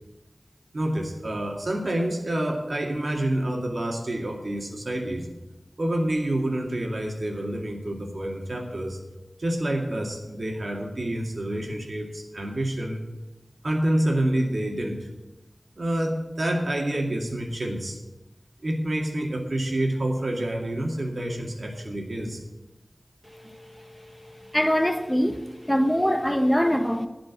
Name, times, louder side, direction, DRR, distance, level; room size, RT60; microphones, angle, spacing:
voice 1, 0.7-5.3 5.8-9.0 9.4-13.0 13.6-15.1 15.8-18.0 18.6-22.4, right 1 dB, 75° right, 2.1 m, -28 dB
voice 2, 24.5-27.1, equal, 10° left, 0.9 m, -23 dB
15.5 x 5.2 x 8.5 m
wide cardioid pair, 45°, 0 cm